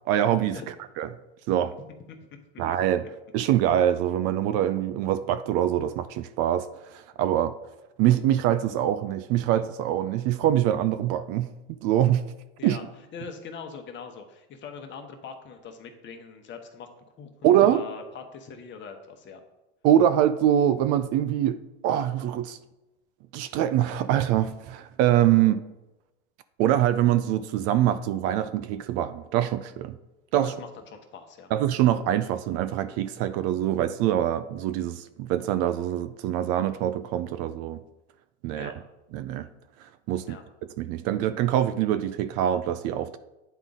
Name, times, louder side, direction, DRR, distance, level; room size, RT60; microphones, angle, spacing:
voice 1, 0.1-0.6 1.0-1.1 1.5-1.7 2.6-3.1 3.3-7.6 8.0-12.2 12.6-12.8 17.4-17.8 19.8-22.6 23.3-25.6 26.6-30.0 30.3-30.5 31.5-37.8 38.4-38.7 39.1-39.5 39.8-40.4 40.8-43.2, right 11 dB, 45° right, 0.4 m, -24 dB
voice 2, 13.1-16.9 17.2-19.4 30.4-31.5 38.5-38.7 40.1-40.4, left 5 dB, 35° left, 1.1 m, -42 dB
9.2 x 3.8 x 3.7 m
supercardioid pair, 110°, 34 cm